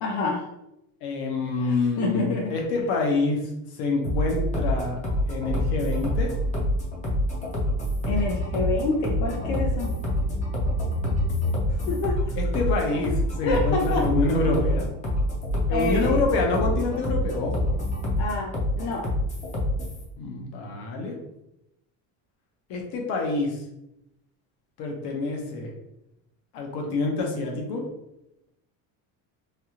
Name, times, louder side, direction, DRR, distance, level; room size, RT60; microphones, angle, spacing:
voice 1, 0.0-0.5 1.6-2.5 8.1-9.9 11.7-12.2 13.4-14.1 15.7-16.3 18.2-19.1, left 3 dB, 90° left, 0 dB, 0.7 m, -28 dB
voice 2, 1.0-3.4 3.7-5.0 5.3-6.3 12.4-14.9 15.7-17.8 20.2-21.2 22.7-23.6 24.8-25.7 26.5-27.8, left 3 dB, 65° left, 1 dB, 0.9 m, -27 dB
sound 1, 4.0-20.0, left 1 dB, 20° left, 0.6 m, -26 dB
3.4 x 2.3 x 2.9 m, 0.86 s
cardioid pair, 145°, 42 cm